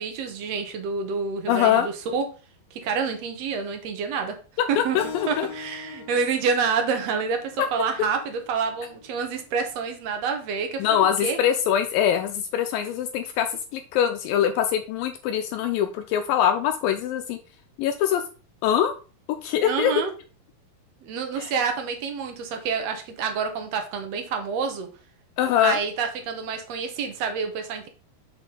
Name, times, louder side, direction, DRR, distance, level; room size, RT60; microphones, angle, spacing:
voice 1, 0.0-2.2 2.7-4.4 4.7-5.0 5.3-10.8 11.2-11.4 19.6-20.1 21.0-24.9 25.6-27.9, right 5 dB, 70° right, 5 dB, 1.7 m, -28 dB
voice 2, 1.5-1.9 4.6-5.5 7.6-7.7 10.8-17.4 17.8-18.2 18.6-18.9 19.4-19.9 21.4-21.5 25.4-25.8, left 9 dB, 80° left, 7 dB, 2.3 m, -23 dB
Keyboard (musical), 5.0-10.1, left 6 dB, 65° left, 1.9 m, -43 dB
6.2 x 5.8 x 3.8 m, 0.35 s
omnidirectional pair, 4.1 m